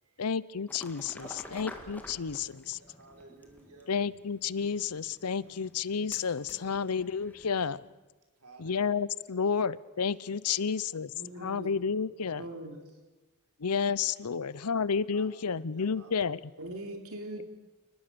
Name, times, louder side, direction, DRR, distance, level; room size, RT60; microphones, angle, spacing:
voice 1, 0.2-2.8 3.9-7.8 8.6-11.1 11.4-12.4 13.6-16.4, left 6 dB, 85° left, 20 dB, 0.7 m, -31 dB
sound 1, 0.7-7.7, left 1 dB, 10° left, 2.4 m, -50 dB
voice 2, 1.2-1.7 2.3-2.4 2.8-3.9 8.4-9.5 10.1-11.6 14.2-14.7 15.1-16.3, right 2 dB, 90° right, 2 dB, 5.2 m, -55 dB
voice 3, 11.1-11.7 12.4-12.8 16.6-17.4, right 1 dB, 70° right, 4 dB, 3.5 m, -42 dB
28.5 x 20.0 x 6.9 m, 1.2 s
head